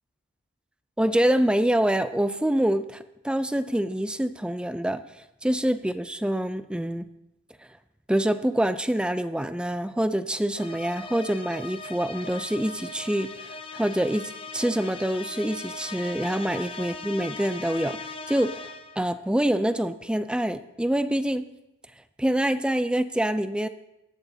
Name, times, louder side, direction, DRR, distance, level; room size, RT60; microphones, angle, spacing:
voice 1, 1.0-5.0 5.4-7.1 8.1-18.7 19.0-21.4 22.2-23.7, right 1 dB, 5° right, 12 dB, 0.3 m, -26 dB
sound 1, 10.6-19.1, left 3 dB, 25° left, 0.7 m, -39 dB
18.5 x 13.0 x 2.8 m, 0.91 s
head